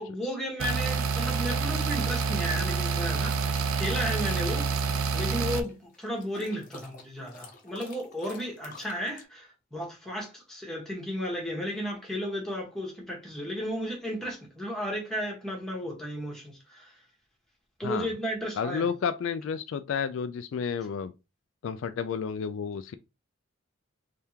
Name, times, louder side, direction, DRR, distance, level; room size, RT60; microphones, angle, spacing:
voice 1, 0.0-4.7 5.1-16.9 17.8-18.9, equal, ahead, 1.3 m, -34 dB
sound 1, 0.6-5.6, right 5 dB, 85° right, 0.5 m, -28 dB
sound 2, 3.6-9.2, left 3 dB, 40° left, 0.8 m, -49 dB
voice 2, 18.6-21.1 21.6-22.9, left 6 dB, 65° left, 0.3 m, -31 dB
3.5 x 3.3 x 2.8 m
head